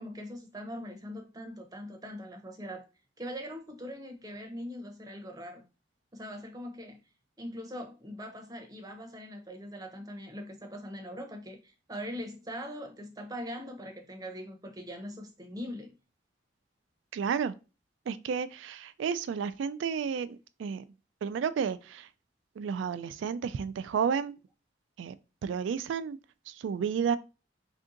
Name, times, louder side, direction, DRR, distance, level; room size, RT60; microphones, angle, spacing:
voice 1, 0.0-2.8 3.2-5.6 6.1-7.0 7.4-15.9, equal, 20° right, 0.7 m, -41 dB
voice 2, 17.1-17.5 18.1-20.8 21.2-22.1 22.6-24.3 25.0-25.1 25.4-26.2 26.5-27.2, right 7 dB, 75° right, 0.3 m, -31 dB
3.5 x 2.7 x 3.8 m
head